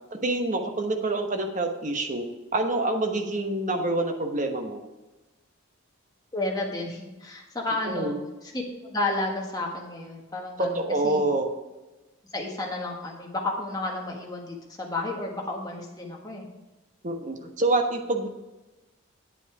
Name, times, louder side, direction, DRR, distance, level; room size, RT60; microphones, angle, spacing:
voice 1, 0.2-2.2 2.5-4.8 7.9-8.1 10.6-11.5 17.0-18.3, right 2 dB, 35° right, 4 dB, 1.0 m, -26 dB
voice 2, 6.3-8.1 8.4-11.2 12.3-16.4 17.3-17.4, left 2 dB, 20° left, -1 dB, 1.5 m, -32 dB
9.1 x 8.3 x 4.8 m, 1.1 s
head